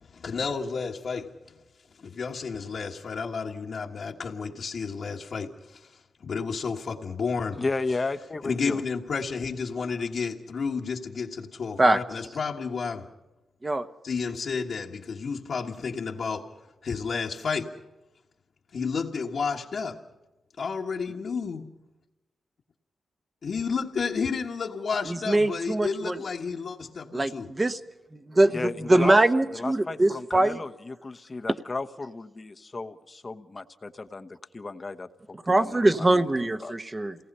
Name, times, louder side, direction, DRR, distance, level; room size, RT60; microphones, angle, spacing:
voice 1, 0.0-1.3 2.0-7.6 8.4-13.1 14.0-16.5 16.8-17.7 18.7-20.0 20.6-21.7 23.4-27.5, left 5 dB, 60° left, 1.5 m, -31 dB
voice 2, 7.6-8.8 28.5-29.2 29.5-36.7, left 3 dB, 30° left, 1.0 m, -34 dB
voice 3, 25.0-26.2 27.1-27.8 28.1-30.6 35.5-37.2, right 2 dB, 20° right, 1.0 m, -22 dB
29.0 x 18.5 x 5.5 m
wide cardioid pair, 125°, 0 cm